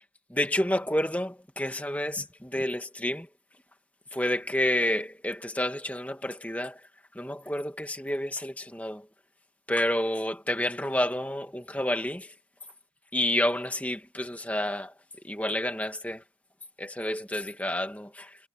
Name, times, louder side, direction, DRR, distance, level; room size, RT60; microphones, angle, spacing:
voice 1, 0.3-3.3 4.1-6.8 7.2-9.1 9.7-12.3 13.1-14.9 15.2-16.2 16.8-18.4, left 1 dB, 10° left, 2.0 m, -29 dB
head